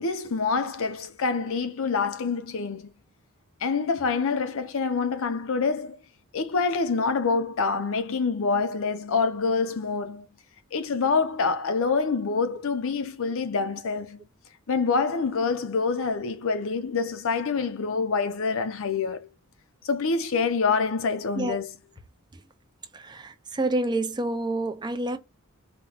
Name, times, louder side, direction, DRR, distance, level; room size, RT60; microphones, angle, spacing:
voice 1, 0.0-2.9 3.6-6.0 6.3-10.3 10.7-14.3 14.7-19.3 19.8-21.7, left 4 dB, 65° left, 0.6 m, -26 dB
voice 2, 22.9-25.2, right 2 dB, 20° right, 0.5 m, -28 dB
4.4 x 2.2 x 3.8 m
head